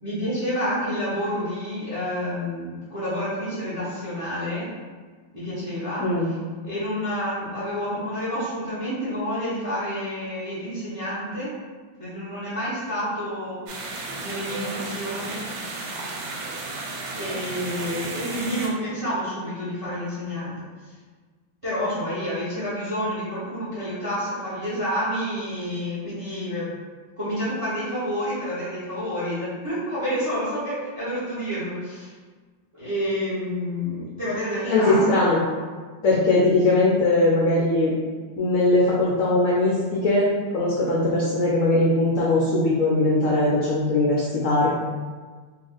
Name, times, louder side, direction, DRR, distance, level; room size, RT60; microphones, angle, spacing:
voice 1, 0.0-4.7 5.3-6.4 6.6-11.6 12.0-13.6 14.2-15.4 17.1-20.5 20.8-20.9 21.6-26.7 27.2-32.1 32.7-35.4, equal, 30° right, -11 dB, 0.6 m, -29 dB
sound 1, 13.7-18.7, right 2 dB, 85° right, 1.4 m, -33 dB
voice 2, 34.7-35.4 36.0-37.9 38.4-40.3 40.5-44.7, left 2 dB, 75° left, -5 dB, 0.7 m, -20 dB
2.8 x 2.4 x 3.7 m, 1.5 s
omnidirectional pair, 2.0 m